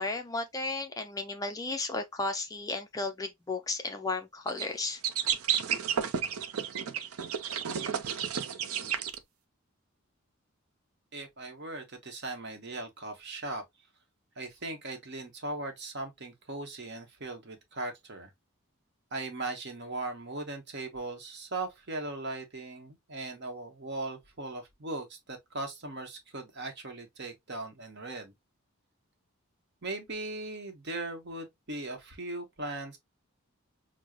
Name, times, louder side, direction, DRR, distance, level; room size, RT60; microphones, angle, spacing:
voice 1, 0.0-5.0, left 3 dB, 15° left, 0.3 m, -34 dB
sound 1, 4.5-4.7 5.0-9.2, right 8 dB, 80° right, 0.5 m, -31 dB
voice 2, 11.1-13.6 14.4-18.3 19.1-28.3 29.8-33.0, right 2 dB, 50° right, 0.9 m, -39 dB
6.0 x 2.0 x 2.2 m
head